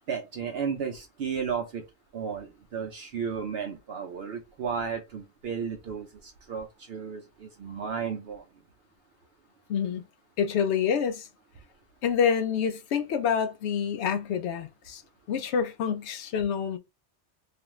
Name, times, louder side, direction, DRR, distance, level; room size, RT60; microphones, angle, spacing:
voice 1, 0.1-1.8 2.1-8.4, right 6 dB, 65° right, 0.8 m, -34 dB
voice 2, 9.7-10.1 10.4-11.3 12.0-15.0 15.3-16.8, left 7 dB, 75° left, 0.8 m, -27 dB
2.4 x 2.4 x 3.0 m
omnidirectional pair, 1.2 m